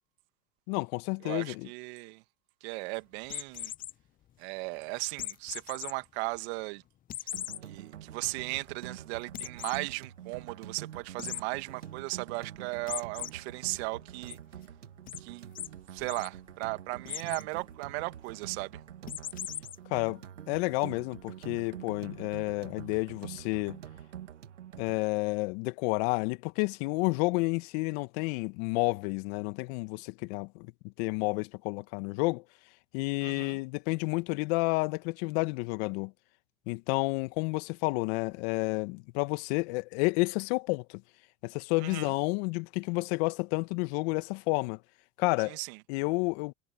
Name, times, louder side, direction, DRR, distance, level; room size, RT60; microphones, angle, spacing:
voice 1, 0.7-1.7 19.9-20.2 20.5-23.8 24.8-30.7 31.0-32.4 32.9-36.1 36.7-41.0 41.4-44.8 45.2-45.6 45.9-46.5, left 26 dB, 60° left, 1.7 m, -30 dB
voice 2, 1.2-2.2 2.6-3.7 4.4-6.8 7.6-14.4 15.2-15.5 15.9-18.8 33.2-33.6 41.8-42.1 45.4-45.8, right 26 dB, 65° right, 2.2 m, -37 dB
sound 1, 3.2-3.9 5.2-5.9 6.4-6.5 7.1-7.6 8.1-8.2 8.5-8.6 9.3-9.8 11.2-11.4 12.9-13.3 13.7-14.3 15.1-15.2 15.6-15.7 16.0-16.3 17.1-17.5 19.1-19.8, left 12 dB, 25° left, 0.4 m, -38 dB
sound 2, 7.3-25.0, right 10 dB, 90° right, 2.3 m, -46 dB
hypercardioid pair, 90°, 35 cm